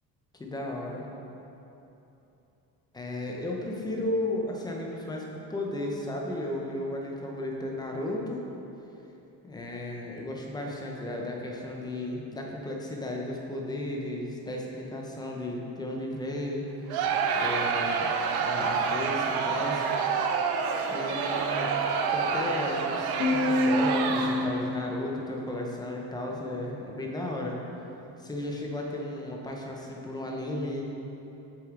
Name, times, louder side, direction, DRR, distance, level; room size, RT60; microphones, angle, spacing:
voice 1, 0.4-1.1 2.9-8.4 9.4-16.7 17.3-18.1 18.4-19.8 20.9-21.7 22.1-27.6 28.2-30.8, left 1 dB, 10° left, -1 dB, 0.7 m, -34 dB
Crowd, 16.9-24.6, right 5 dB, 90° right, 0.7 m, -28 dB
sound 1, 23.2-25.6, left 1 dB, 85° left, 1.6 m, -28 dB
7.8 x 6.8 x 3.7 m, 3.0 s
cardioid pair, 175°, 37 cm